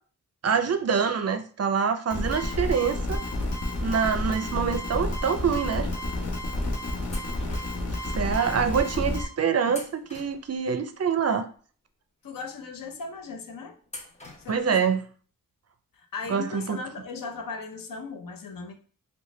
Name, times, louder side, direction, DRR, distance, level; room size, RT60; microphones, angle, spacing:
voice 1, 0.4-3.2 3.8-5.9 8.1-11.5 14.5-15.0 16.3-16.8, right 6 dB, 45° right, 0.4 m, -25 dB
sound 1, 2.1-9.2, left 1 dB, 45° left, 1.1 m, -30 dB
sound 2, 7.1-8.0 9.7-10.8 13.9-14.8, left 1 dB, 20° left, 0.8 m, -45 dB
voice 2, 8.3-8.7 9.1-9.2 12.2-13.8 14.4-14.8 16.0-18.7, left 4 dB, 65° left, 0.7 m, -38 dB
3.8 x 2.3 x 3.0 m
cardioid pair, 55°, 35 cm